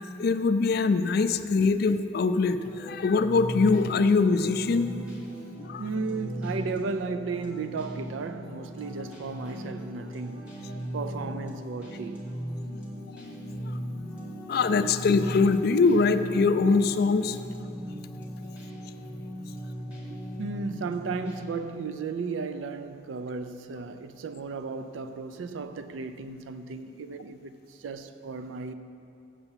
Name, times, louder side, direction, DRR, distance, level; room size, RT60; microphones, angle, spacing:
voice 1, 0.2-4.9 5.6-5.8 12.7-12.8 13.1-14.0 14.5-17.4, left 4 dB, 55° left, 0.4 m, -23 dB
sound 1, 2.6-21.5, equal, 5° right, 1.5 m, -38 dB
voice 2, 5.8-10.4 10.9-12.3 20.1-28.7, right 4 dB, 85° right, 0.4 m, -34 dB
6.9 x 6.7 x 7.2 m
head